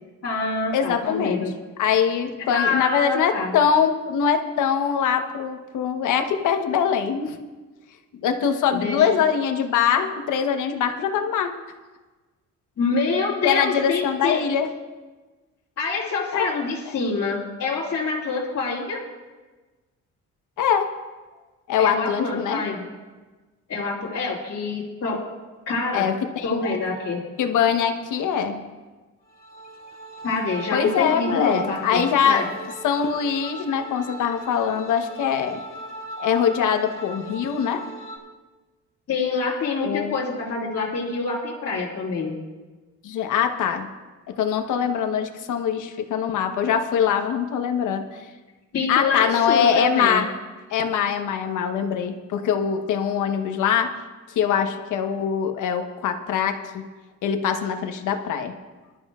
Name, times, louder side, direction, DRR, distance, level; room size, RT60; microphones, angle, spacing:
voice 1, 0.2-1.5 2.5-3.5 8.7-9.1 12.8-14.4 15.8-19.0 21.8-22.8 23.7-25.2 25.7-26.1 26.4-27.2 30.2-32.5 39.1-42.3 48.7-50.2, left 4 dB, 50° left, -8 dB, 2.7 m, -26 dB
voice 2, 0.7-1.4 1.8-7.4 8.1-11.5 13.4-14.7 20.6-20.9 21.7-22.6 25.9-26.7 27.4-28.6 30.7-32.4 32.8-35.6 36.2-37.8 39.8-40.2 43.0-43.9 44.4-48.3 48.9-50.3 50.7-53.9 54.3-56.8 57.2-58.5, left 7 dB, 80° left, 6 dB, 1.3 m, -23 dB
sound 1, 29.3-38.2, right 1 dB, 30° left, 2.7 m, -38 dB
21.5 x 12.5 x 2.5 m, 1.3 s
cardioid pair, 90°, 30 cm